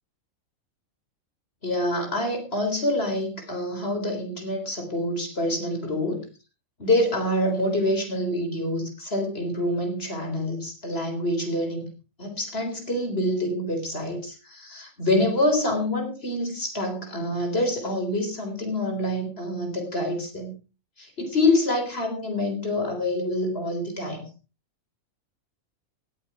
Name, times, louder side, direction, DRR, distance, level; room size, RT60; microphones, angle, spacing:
voice 1, 1.6-6.2 6.8-11.9 12.2-20.5 21.0-24.3, left 1 dB, 45° left, 3 dB, 4.3 m, -26 dB
18.5 x 8.2 x 4.8 m, 0.33 s
omnidirectional pair, 1.4 m